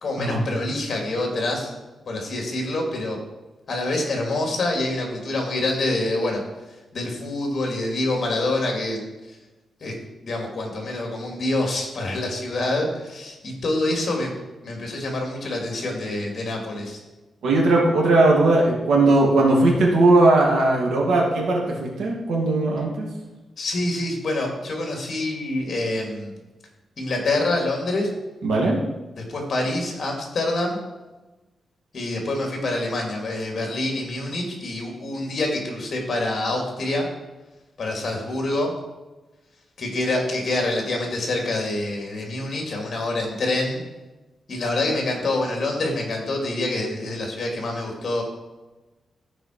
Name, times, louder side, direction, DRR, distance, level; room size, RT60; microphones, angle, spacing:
voice 1, 0.0-1.7 2.1-3.2 3.7-6.4 6.9-9.0 9.8-9.9 10.2-14.3 14.6-17.0 23.6-26.3 27.0-28.1 29.2-30.8 31.9-37.1 37.8-38.7 39.8-43.8 44.5-48.2, left 2 dB, 45° left, 1 dB, 2.5 m, -26 dB
voice 2, 17.4-23.1 28.4-28.8, right 2 dB, 85° right, -2 dB, 2.6 m, -18 dB
14.5 x 5.0 x 4.6 m, 1.1 s
wide cardioid pair, 145°, 0 cm